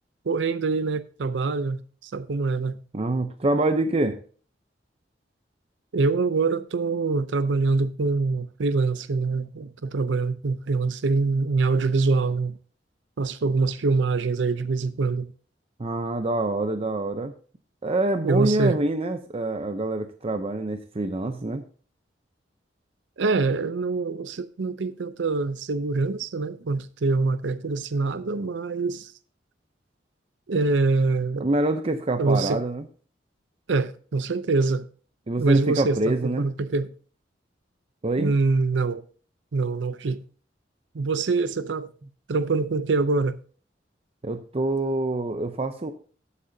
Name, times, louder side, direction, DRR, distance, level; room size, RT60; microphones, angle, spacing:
voice 1, 0.3-2.8 5.9-12.6 13.2-15.3 18.2-18.8 23.2-29.1 30.5-31.5 32.2-32.6 33.7-34.8 35.4-36.9 38.2-39.0 39.5-40.2 40.9-41.9 42.3-43.4, right 3 dB, 90° right, 0.6 m, -24 dB
voice 2, 2.9-4.2 15.8-17.3 17.8-21.6 31.4-32.8 35.3-36.5 38.0-38.3 44.2-45.9, right 2 dB, 35° right, 0.6 m, -26 dB
12.5 x 8.3 x 2.7 m
head